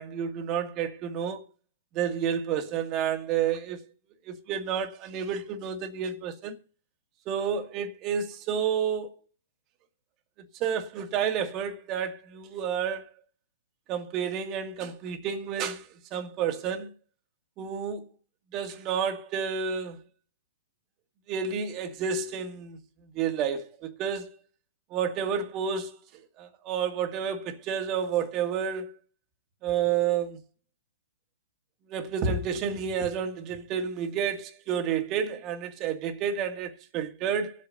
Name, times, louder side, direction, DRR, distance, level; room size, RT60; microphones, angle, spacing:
voice 1, 0.0-1.4 2.0-3.9 4.3-6.5 7.3-9.1 10.6-13.1 13.9-16.9 17.6-18.0 18.5-20.0 21.3-22.8 23.2-24.3 24.9-26.0 26.4-28.9 29.6-30.4 31.9-37.5, right 7 dB, 30° right, 1.9 m, -30 dB
24.0 x 8.4 x 2.6 m
hypercardioid pair, 130°, 0 cm